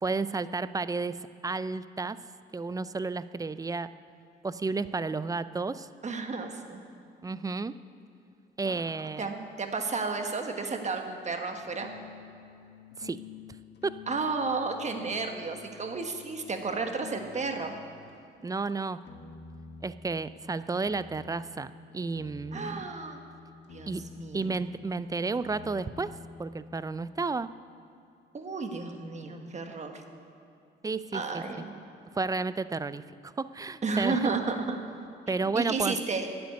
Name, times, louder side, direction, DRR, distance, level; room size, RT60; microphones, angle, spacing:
voice 1, 0.0-2.2 2.5-3.9 4.4-5.9 7.2-7.7 8.6-9.3 13.0-13.2 13.8-14.0 18.4-19.0 19.8-22.8 23.9-24.0 24.3-27.5 30.8-31.4 32.1-34.4 35.3-36.0, right 4 dB, 15° right, 15 dB, 0.4 m, -32 dB
voice 2, 6.0-6.8 8.6-8.8 9.2-11.9 14.1-17.8 22.5-23.2 23.7-24.6 28.3-30.0 31.1-31.8 33.8-34.8 35.3-36.3, right 4 dB, 35° right, 4 dB, 1.5 m, -32 dB
sound 1, 11.5-18.2 19.0-27.1, left 5 dB, 60° left, 1.6 m, -49 dB
10.5 x 7.9 x 9.5 m, 2.6 s
cardioid pair, 90°, 20 cm